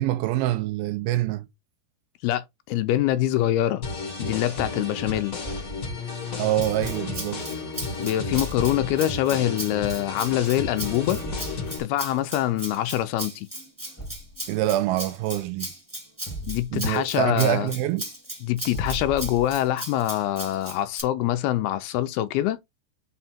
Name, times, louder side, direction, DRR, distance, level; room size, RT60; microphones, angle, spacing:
voice 1, 0.0-1.5 6.4-7.5 14.5-15.7 16.7-18.1, right 14 dB, 75° right, 2.4 m, -25 dB
voice 2, 2.2-3.8 4.2-5.4 8.0-11.2 11.7-13.5 16.4-17.7 18.4-22.6, left 13 dB, 80° left, 2.6 m, -25 dB
sound 1, 3.8-11.8, left 3 dB, 40° left, 1.2 m, -33 dB
Thump thud, 5.4-5.9 8.3-9.0 11.2-11.7 14.0-14.4 16.3-16.9 18.7-19.7, equal, 5° left, 1.5 m, -36 dB
Rattle (instrument), 6.6-21.0, right 1 dB, 10° right, 0.8 m, -37 dB
5.6 x 4.4 x 4.3 m
omnidirectional pair, 4.6 m